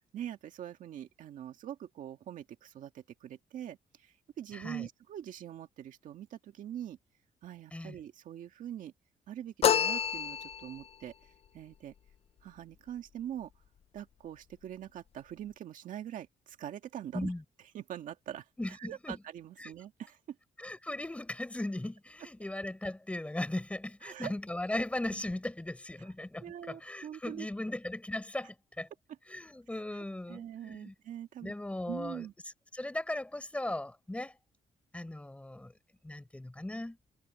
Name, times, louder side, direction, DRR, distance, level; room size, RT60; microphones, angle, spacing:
voice 1, 0.1-7.0 7.4-8.9 9.3-11.1 11.5-11.9 12.4-13.5 13.9-17.3 17.7-20.4 24.0-24.3 26.0-26.1 26.4-27.5 29.7-31.5 31.9-32.3, right 10 dB, 75° right, 1.9 m, -43 dB
voice 2, 4.5-4.9 7.7-8.0 17.1-17.4 18.6-19.2 19.6-19.7 20.6-28.9 29.3-30.9 31.4-32.3 32.7-34.4 34.9-35.7 36.0-37.0, left 1 dB, 10° left, 4.8 m, -38 dB
sound 1, 9.6-10.9, left 8 dB, 50° left, 0.6 m, -28 dB
cardioid pair, 135°, 14 cm